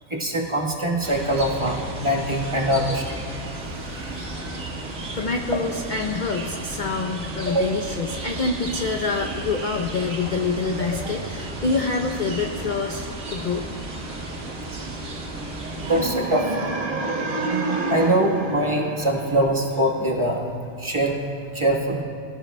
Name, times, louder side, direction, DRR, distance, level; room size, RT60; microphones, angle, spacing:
voice 1, 0.1-3.0 3.8-4.1 4.4-4.6 7.5-7.7 15.4-16.7 17.9-20.4 20.8-21.2 21.5-22.0, right 1 dB, 25° right, -2 dB, 1.3 m, -23 dB
sound 1, 1.0-16.1, right 2 dB, 90° right, 2.0 m, -34 dB
voice 2, 5.2-13.7, left 4 dB, 50° left, 2 dB, 0.6 m, -26 dB
sound 2, 15.8-19.9, right 3 dB, 45° right, 1.0 m, -28 dB
23.0 x 13.0 x 2.2 m, 2.4 s
omnidirectional pair, 1.4 m